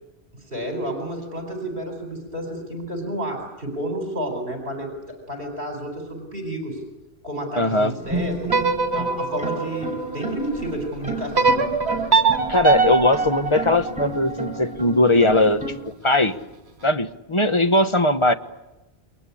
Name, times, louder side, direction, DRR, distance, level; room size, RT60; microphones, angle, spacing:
voice 1, 0.3-6.8 7.2-8.6 8.9-12.1, right 1 dB, 60° right, 2 dB, 4.5 m, -31 dB
voice 2, 7.6-7.9 12.5-15.6 16.0-16.4 16.8-18.3, left 1 dB, 30° left, 9 dB, 1.1 m, -19 dB
sound 1, 8.0-15.7, right 2 dB, 5° right, 6.8 m, -32 dB
sound 2, 8.4-10.6 11.4-14.5, right 4 dB, 85° right, 1.9 m, -22 dB
29.0 x 23.0 x 8.5 m, 1.0 s
omnidirectional pair, 1.1 m